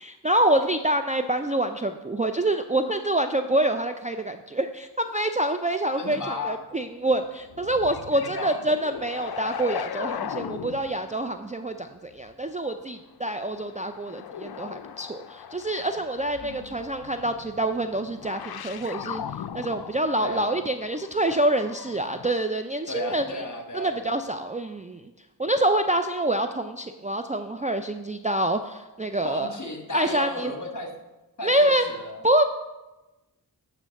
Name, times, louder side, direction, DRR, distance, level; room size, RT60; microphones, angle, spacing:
voice 1, 0.0-19.2 19.5-23.4 23.7-25.1 25.4-29.5 29.9-30.5 31.4-31.9 32.2-32.4, right 1 dB, 20° right, 6 dB, 0.4 m, -26 dB
voice 2, 6.0-6.6 8.2-8.6 16.4-16.7 20.2-20.6 22.9-24.1 29.2-30.9 31.4-32.2, left 1 dB, 45° left, 3 dB, 1.6 m, -34 dB
sound 1, 7.2-11.1 13.2-22.3, left 8 dB, 65° left, 0.5 m, -38 dB
9.4 x 3.3 x 6.4 m, 1.1 s
cardioid pair, 45°, 42 cm